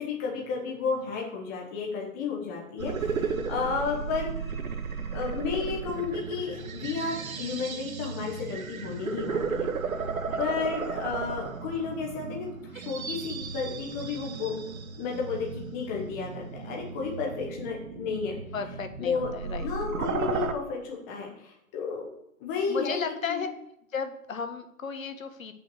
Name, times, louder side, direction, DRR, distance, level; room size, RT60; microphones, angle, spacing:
voice 1, 0.0-4.5 5.1-9.7 10.4-14.5 15.0-18.4 19.0-19.3 19.6-22.1 22.4-23.4, left 5 dB, 10° left, -1 dB, 0.8 m, -32 dB
sound 1, 2.8-20.5, right 5 dB, 70° right, 1.4 m, -35 dB
voice 2, 10.2-10.7 18.5-19.7 22.7-23.5 23.9-25.5, left 6 dB, 65° left, 8 dB, 1.6 m, -34 dB
8.3 x 5.9 x 6.8 m, 0.77 s
hypercardioid pair, 160°, 44 cm